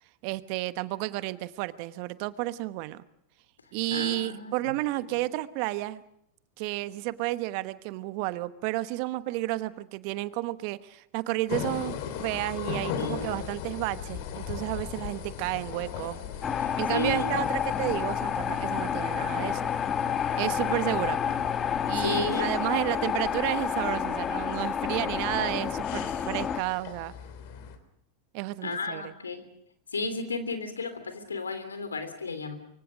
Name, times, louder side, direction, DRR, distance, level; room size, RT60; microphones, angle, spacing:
voice 1, 0.2-3.0 3.7-6.0 6.6-16.2 16.5-19.7 20.4-21.4 21.9-27.1 28.3-29.1, right 18 dB, 55° right, 14 dB, 1.1 m, -31 dB
voice 2, 3.9-4.7 5.1-5.2 13.0-13.4 16.6-17.5 21.9-22.5 28.6-29.4 29.9-32.6, left 4 dB, 90° left, 10 dB, 3.1 m, -34 dB
sound 1, 11.5-27.8, left 8 dB, 60° left, 3.1 m, -40 dB
sound 2, 16.4-26.6, left 8 dB, 30° left, 1.5 m, -29 dB
24.5 x 24.0 x 6.4 m, 0.73 s
hypercardioid pair, 95°, 0 cm